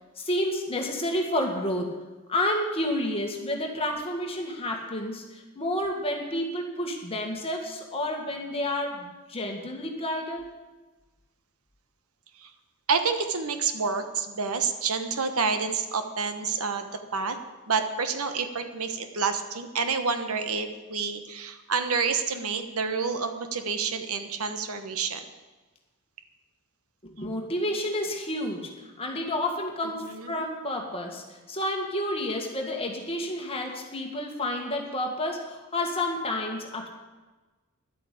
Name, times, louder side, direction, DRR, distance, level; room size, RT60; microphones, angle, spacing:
voice 1, 0.2-2.0 2.3-10.5 27.0-36.9, left 1 dB, 25° left, 1 dB, 1.9 m, -30 dB
voice 2, 12.9-16.9 17.1-17.4 17.7-25.2 30.0-30.3, right 5 dB, 75° right, 8 dB, 1.2 m, -28 dB
11.5 x 8.5 x 8.5 m, 1.2 s
head